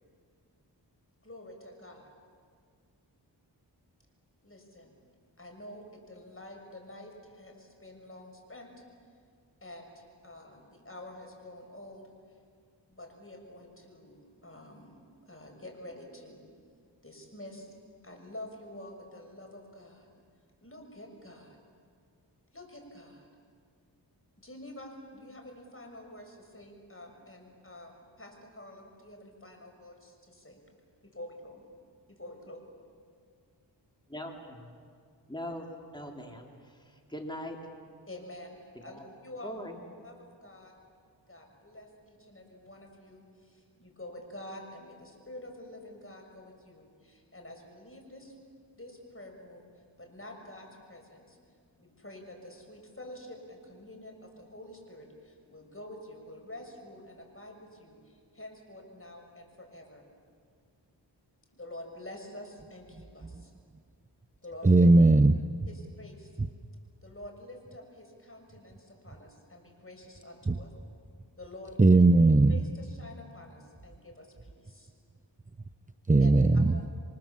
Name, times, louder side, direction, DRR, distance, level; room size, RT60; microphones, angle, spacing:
voice 1, 1.2-2.1 4.4-5.0 5.4-8.7 9.6-12.1 12.9-14.9 15.3-16.4 17.0-17.7 18.0-20.1 20.6-21.6 22.5-23.3 24.4-30.6 31.0-31.6 32.1-32.6 38.1-39.6 40.0-40.7 41.3-48.3 48.8-49.7 50.0-51.4 51.8-60.1 61.5-63.5 64.4-64.9 65.7-66.3 67.0-70.7 71.4-72.0 72.5-74.9 76.2-76.3 76.7-76.9, left 1 dB, 30° left, 3 dB, 6.2 m, -48 dB
voice 2, 34.1-34.7 35.3-37.6 38.8-39.0 39.4-39.8, equal, 10° left, 1 dB, 3.5 m, -41 dB
voice 3, 64.6-65.3 70.5-70.6 71.8-72.5 76.1-76.7, right 2 dB, 20° right, 10 dB, 0.7 m, -18 dB
29.0 x 23.5 x 7.3 m, 2.1 s
cardioid pair, 45°, 44 cm